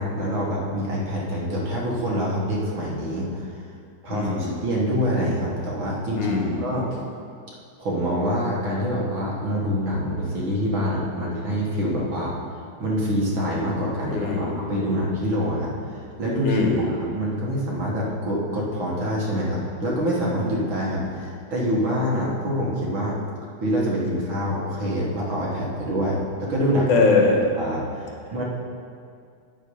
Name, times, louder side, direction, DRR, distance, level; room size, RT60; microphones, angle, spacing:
voice 1, 0.0-3.5 4.0-6.8 7.8-12.3 12.8-23.2 23.6-26.9 27.6-28.4, equal, 50° right, -5 dB, 1.8 m, -26 dB
voice 2, 4.1-4.6 6.1-6.7 14.1-14.6 16.4-16.9 26.9-27.4, left 4 dB, 75° left, 0 dB, 2.6 m, -21 dB
8.3 x 7.3 x 5.5 m, 2.3 s
omnidirectional pair, 3.5 m